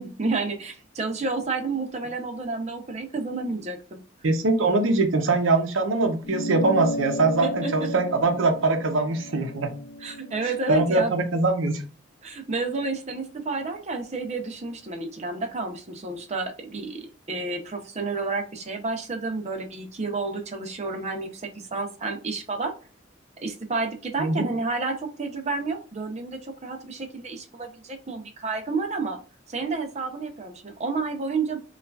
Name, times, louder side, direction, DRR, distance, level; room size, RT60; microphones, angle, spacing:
voice 1, 0.0-4.0 7.4-7.9 10.0-11.1 12.2-22.7 23.4-29.2 29.5-31.6, right 3 dB, 35° right, 5 dB, 0.6 m, -30 dB
voice 2, 4.2-9.7 10.4-11.8 24.2-24.5, right 3 dB, 90° right, 6 dB, 0.7 m, -23 dB
sound 1, 6.2-11.0, left 1 dB, 60° left, 0.5 m, -34 dB
5.4 x 2.4 x 2.3 m, 0.35 s
head